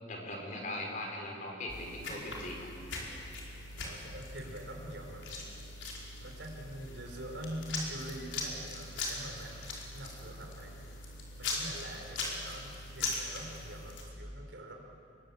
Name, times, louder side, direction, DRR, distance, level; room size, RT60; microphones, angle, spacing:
voice 1, 0.1-2.7, left 1 dB, 45° left, 1 dB, 4.6 m, -40 dB
sound 1, 1.7-14.0, left 2 dB, 90° left, 5.0 m, -41 dB
voice 2, 3.7-5.6 6.2-9.7 9.9-10.8 11.4-14.7, right 1 dB, 85° right, 1 dB, 4.6 m, -44 dB
26.0 x 22.0 x 8.6 m, 2.6 s
head